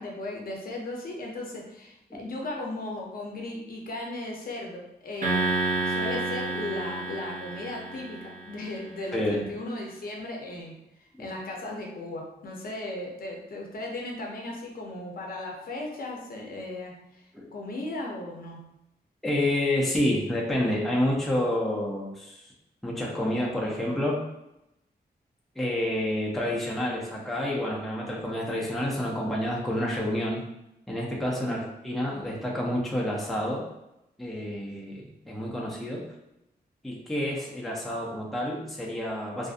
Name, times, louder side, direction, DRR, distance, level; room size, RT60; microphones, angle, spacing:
voice 1, 0.0-5.5 5.8-10.8 11.2-17.2 17.5-18.6 31.4-31.6, left 2 dB, 60° left, -1 dB, 0.5 m, -36 dB
sound 1, 5.2-8.7, right 2 dB, 50° right, 0.5 m, -30 dB
voice 2, 9.1-9.5 11.2-11.3 17.3-17.5 19.2-22.5 22.8-24.2 25.6-30.4 30.9-33.6 34.2-36.0 36.8-39.5, left 1 dB, ahead, -4 dB, 0.4 m, -29 dB
2.5 x 2.4 x 2.4 m, 0.88 s
wide cardioid pair, 150°, 17 cm